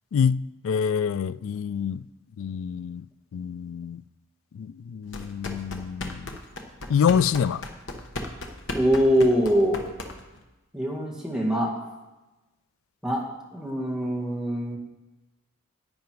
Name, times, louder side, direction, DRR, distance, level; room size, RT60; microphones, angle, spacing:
voice 1, 0.1-2.0 2.4-3.1 3.3-4.0 4.5-6.3 6.9-7.6, left 7 dB, 75° left, 0.3 m, -26 dB
sound 1, 5.1-10.4, left 2 dB, 60° left, 1.1 m, -36 dB
voice 2, 8.7-9.9 10.7-11.7 13.0-13.2 13.5-14.8, equal, 5° right, 1.9 m, -23 dB
10.5 x 9.3 x 4.6 m
head